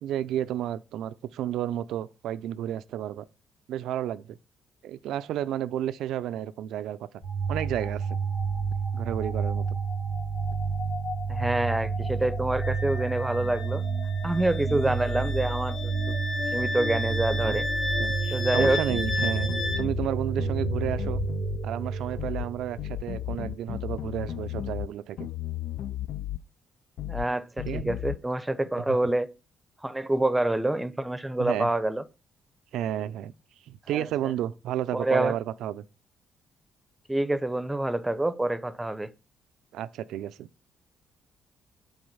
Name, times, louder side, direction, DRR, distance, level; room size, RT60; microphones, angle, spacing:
voice 1, 0.0-3.3 3.7-4.4 4.8-7.2 7.5-8.2 8.9-9.8 14.7-15.0 17.5-17.6 18.0-21.2 21.6-25.3 27.6-27.9 28.8-29.0 31.4-31.7 32.7-33.3 33.7-35.8 39.7-40.5, right 11 dB, 85° right, 0.4 m, -32 dB
sound 1, 7.2-23.6, right 4 dB, 60° left, 2.7 m, -30 dB
voice 2, 11.3-13.8 14.2-16.2 16.5-17.7 18.3-18.8 27.1-29.3 29.8-32.0 33.9-34.1 34.9-35.4 37.1-39.1, right 1 dB, 10° right, 0.7 m, -27 dB
Wind instrument woodwind instrument, 12.6-19.8, left 2 dB, 35° left, 2.0 m, -33 dB
sound 2, 18.6-20.1 20.4-21.6 22.2-22.5 22.8-24.9 25.2-26.4 27.0-27.3 27.6-28.2, left 13 dB, 75° left, 0.4 m, -34 dB
7.9 x 4.1 x 5.5 m
cardioid pair, 90°, 0 cm